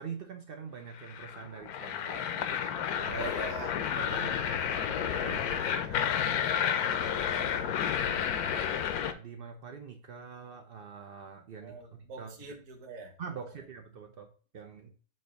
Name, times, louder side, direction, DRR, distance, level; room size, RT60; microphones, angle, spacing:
voice 1, 0.0-3.3 4.0-4.3 5.1-5.6 5.9-6.3 8.4-12.3 13.2-14.9, right 6 dB, 90° right, 0.5 m, -45 dB
sound 1, 1.0-9.1, left 8 dB, 70° left, 1.0 m, -31 dB
voice 2, 3.1-7.9 11.6-13.7 14.7-14.9, right 4 dB, 55° right, 1.5 m, -47 dB
7.5 x 2.6 x 5.0 m
omnidirectional pair, 1.8 m